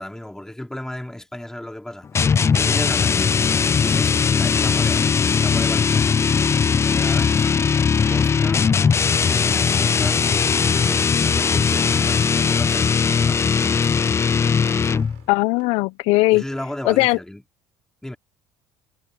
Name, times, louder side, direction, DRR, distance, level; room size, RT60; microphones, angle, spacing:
voice 1, 0.0-8.9 9.2-14.1 14.6-14.9 16.3-17.4 18.0-18.2, left 1 dB, 5° left, 2.9 m, -35 dB
sound 1, 2.2-15.2, left 6 dB, 25° left, 0.4 m, -19 dB
sound 2, 8.8-15.7, right 24 dB, 75° right, 7.6 m, -44 dB
voice 2, 15.3-16.4 16.8-17.2, left 22 dB, 75° left, 0.7 m, -18 dB
supercardioid pair, 80°, 10 cm